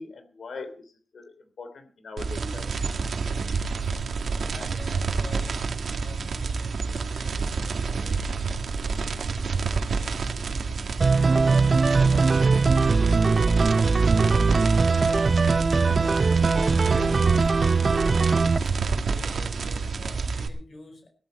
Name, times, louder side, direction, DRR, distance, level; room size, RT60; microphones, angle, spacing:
voice 1, 0.0-2.7, left 3 dB, 75° left, 9 dB, 3.3 m, -41 dB
sound 1, 2.2-20.5, right 4 dB, 80° right, 2.0 m, -28 dB
voice 2, 4.3-9.2 9.8-12.9 13.2-15.8 16.3-17.9 18.8-21.1, left 2 dB, 50° left, 4 dB, 4.7 m, -47 dB
sound 2, 11.0-18.6, right 4 dB, 40° right, 0.7 m, -21 dB
18.0 x 13.5 x 4.4 m, 0.41 s
wide cardioid pair, 150°, 0 cm